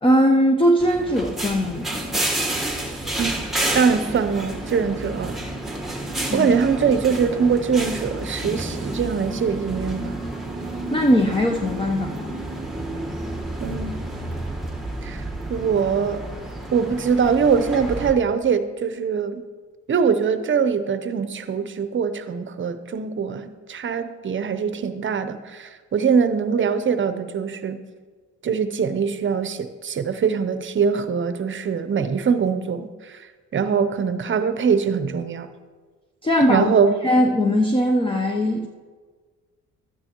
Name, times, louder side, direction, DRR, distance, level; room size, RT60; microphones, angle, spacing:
voice 1, 0.0-2.2 6.3-6.5 10.9-12.4 36.2-36.7 37.0-38.7, equal, 15° left, 2 dB, 0.7 m, -20 dB
sound 1, 0.8-18.1, right 1 dB, ahead, 1.4 m, -30 dB
voice 2, 3.7-5.4 6.3-10.2 13.6-14.0 15.0-16.2 16.7-19.4 19.9-27.8 28.4-33.3 33.5-35.5 36.5-37.0, right 6 dB, 40° right, 11 dB, 0.7 m, -22 dB
12.5 x 9.5 x 3.0 m, 1.5 s
cardioid pair, 90°, 30 cm